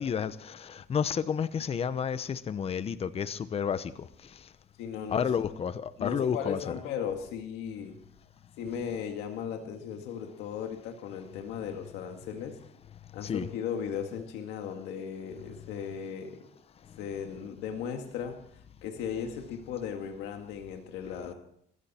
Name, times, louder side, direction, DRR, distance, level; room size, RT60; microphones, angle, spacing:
voice 1, 0.0-4.4 5.1-6.7 13.2-13.5, left 7 dB, 35° left, 0.9 m, -31 dB
voice 2, 4.8-5.3 6.0-7.9 8.6-12.6 13.1-16.4 17.0-21.3, left 7 dB, 90° left, 2.1 m, -37 dB
21.5 x 15.5 x 4.4 m
cardioid pair, 110°, 17 cm